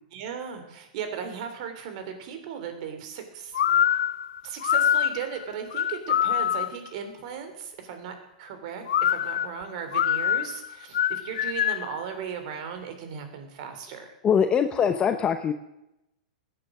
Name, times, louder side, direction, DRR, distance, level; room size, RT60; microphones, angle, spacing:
voice 1, 0.1-3.6 4.4-14.1, right 7 dB, 55° right, 7 dB, 3.2 m, -37 dB
sound 1, 3.5-6.9 8.9-12.0, left 10 dB, 80° left, 0.5 m, -25 dB
voice 2, 14.2-15.5, left 7 dB, 20° left, 8 dB, 0.8 m, -22 dB
16.5 x 9.5 x 6.1 m, 0.89 s
hypercardioid pair, 130°, 4 cm